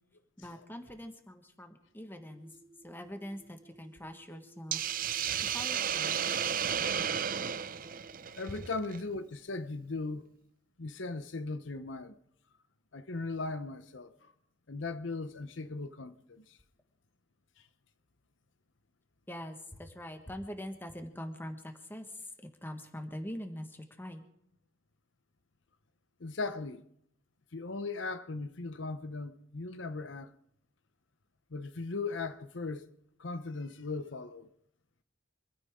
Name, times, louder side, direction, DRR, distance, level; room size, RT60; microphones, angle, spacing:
voice 1, 0.4-2.5 2.8-4.8 5.4-6.1 8.5-8.6 19.3-22.3 22.6-24.2, equal, 10° left, 1.5 m, -43 dB
sound 1, 2.2-8.2, right 1 dB, 25° right, 1.0 m, -59 dB
Hiss, 4.7-9.0, right 8 dB, 45° right, 0.6 m, -33 dB
voice 2, 8.3-10.3 10.8-12.1 12.9-14.3 14.7-16.6 26.2-26.8 27.5-30.3 31.5-32.9 33.2-34.5, left 3 dB, 75° left, 0.9 m, -38 dB
26.0 x 14.5 x 3.7 m
head